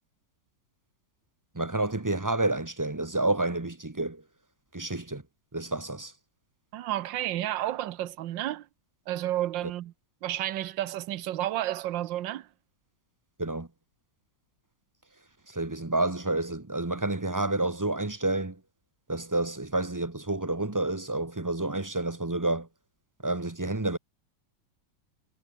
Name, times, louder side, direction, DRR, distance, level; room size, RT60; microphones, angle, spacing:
voice 1, 1.5-4.2 4.7-5.2 5.5-6.1 13.4-13.7 15.5-18.6 19.1-22.7 23.2-24.0, right 2 dB, 15° right, 1.0 m, -29 dB
voice 2, 6.7-8.7 9.1-9.9 10.2-12.5, right 13 dB, 85° right, 1.5 m, -31 dB
omnidirectional pair, 2.0 m